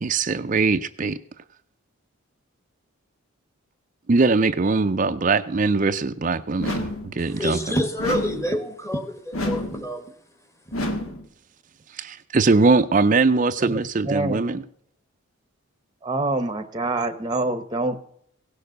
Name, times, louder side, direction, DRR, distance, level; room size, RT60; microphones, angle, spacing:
voice 1, 0.0-1.2 4.1-7.8 11.9-14.6, right 3 dB, 35° right, 0.4 m, -21 dB
sound 1, 6.6-7.2 8.0-8.5 9.3-9.9 10.7-11.3, left 1 dB, 75° left, 1.9 m, -28 dB
voice 2, 7.2-10.1, equal, 15° left, 1.3 m, -27 dB
voice 3, 13.6-14.4 16.0-18.0, right 2 dB, 20° right, 0.8 m, -26 dB
16.5 x 6.7 x 6.6 m
head